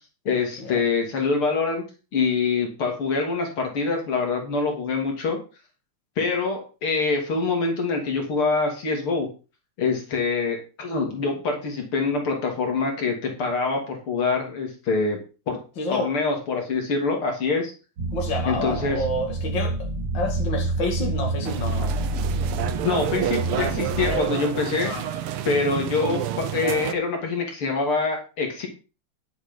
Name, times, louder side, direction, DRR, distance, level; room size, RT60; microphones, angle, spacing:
voice 1, 0.3-1.8 2.1-5.4 6.2-9.3 9.8-15.2 15.5-15.6 15.9-17.7 18.5-19.0 22.8-25.2 25.5-28.7, left 4 dB, 75° left, 3.6 m, -25 dB
voice 2, 15.8-16.1 18.1-19.7 20.1-22.0 23.5-23.7 24.0-24.3 24.8-25.0 25.5-25.8, left 1 dB, 55° left, 2.9 m, -29 dB
sound 1, 18.0-24.2, right 2 dB, 60° right, 3.2 m, -28 dB
sound 2, 21.4-26.9, right 10 dB, 85° right, 1.8 m, -29 dB
10.5 x 7.9 x 5.4 m
omnidirectional pair, 2.4 m